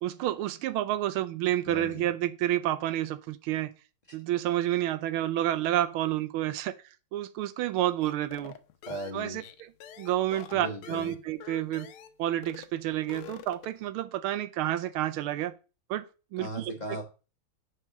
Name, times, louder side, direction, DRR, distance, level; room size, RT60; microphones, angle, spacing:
voice 1, 0.0-3.7 4.1-6.7 7.1-8.6 9.1-9.4 10.0-11.9 12.2-15.5 15.9-16.1 16.3-16.7, right 13 dB, 90° right, 1.5 m, -29 dB
voice 2, 1.7-2.0 8.9-9.4 10.5-11.1 16.4-17.0, equal, 25° left, 1.2 m, -37 dB
sound 1, 8.0-12.2 12.4-12.7 13.0-13.8, left 10 dB, 90° left, 1.6 m, -46 dB
5.8 x 4.8 x 5.8 m
omnidirectional pair, 2.3 m